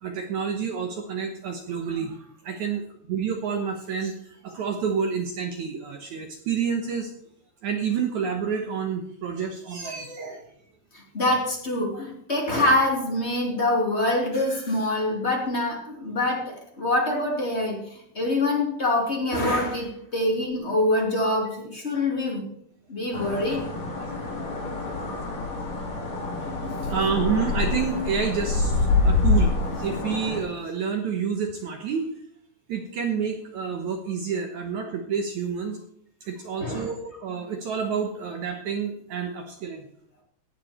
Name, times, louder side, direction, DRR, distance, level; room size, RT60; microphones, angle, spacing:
voice 1, 0.0-2.2 2.5-4.1 4.4-7.1 7.6-10.4 11.9-12.0 26.9-32.1 32.7-35.8 36.3-39.8, right 6 dB, 70° right, 3 dB, 1.8 m, -29 dB
voice 2, 10.9-22.5 22.9-23.6 36.6-36.9, left 1 dB, 20° left, -2 dB, 2.1 m, -25 dB
sound 1, 23.1-30.4, left 3 dB, 55° left, 4.5 m, -26 dB
16.0 x 9.1 x 4.4 m, 0.70 s
omnidirectional pair, 4.8 m